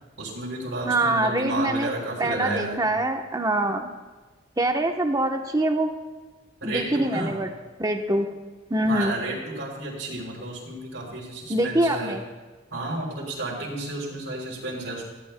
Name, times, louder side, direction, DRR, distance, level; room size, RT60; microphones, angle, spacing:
voice 1, 0.2-2.8 6.6-7.3 8.8-12.2 12.7-15.0, right 2 dB, 75° right, -5 dB, 3.2 m, -32 dB
voice 2, 0.8-1.9 2.2-3.9 4.6-5.9 6.6-7.5 7.8-8.3 8.7-9.2 11.5-12.2, right 1 dB, 20° right, 4 dB, 1.0 m, -24 dB
18.5 x 14.5 x 2.2 m, 1.3 s
head